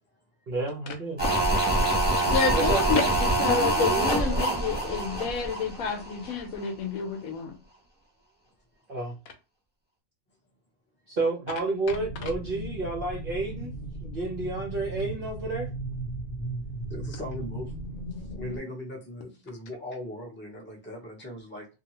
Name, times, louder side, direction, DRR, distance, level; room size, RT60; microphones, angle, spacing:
voice 1, 0.5-1.2 2.5-2.8 8.9-9.1 11.1-13.7 14.0-15.7, right 3 dB, 55° right, 0.6 m, -30 dB
sound 1, 1.2-6.4 6.6-6.7, right 1 dB, 10° right, 0.8 m, -25 dB
voice 2, 2.3-7.6, left 5 dB, 70° left, 1.0 m, -29 dB
sound 2, 11.8-18.6, right 1 dB, 50° left, 0.7 m, -36 dB
voice 3, 16.9-17.7 18.2-21.7, left 1 dB, 10° left, 0.5 m, -39 dB
2.7 x 2.3 x 2.9 m
omnidirectional pair, 1.6 m